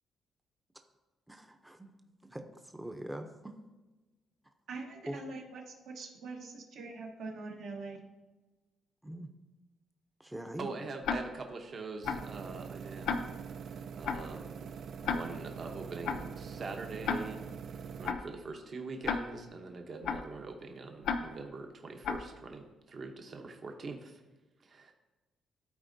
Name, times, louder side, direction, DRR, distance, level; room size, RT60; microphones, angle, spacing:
voice 1, 1.3-1.8 2.3-2.4 2.7-3.3 5.1-5.2 9.0-9.3 10.2-10.7, right 1 dB, 10° right, 6 dB, 0.6 m, -41 dB
voice 2, 4.7-8.0, right 3 dB, 80° right, 0 dB, 1.2 m, -43 dB
voice 3, 10.6-13.3 13.9-14.7 15.0-17.4 18.0-24.2 24.6-24.9, right 3 dB, 45° right, 4 dB, 0.8 m, -43 dB
Tick-tock, 11.0-11.2 12.0-12.2 13.0-13.2 14.0-14.2 15.0-15.2 16.0-16.2 17.0-17.2 18.0-18.2 19.0-19.2 20.0-20.2 21.0-21.2 22.0-22.2, left 6 dB, 80° left, 0.5 m, -31 dB
sound 1, 12.0-18.1, right 6 dB, 65° right, 0.3 m, -44 dB
12.5 x 4.2 x 2.6 m, 1.2 s
cardioid pair, 90°, 0 cm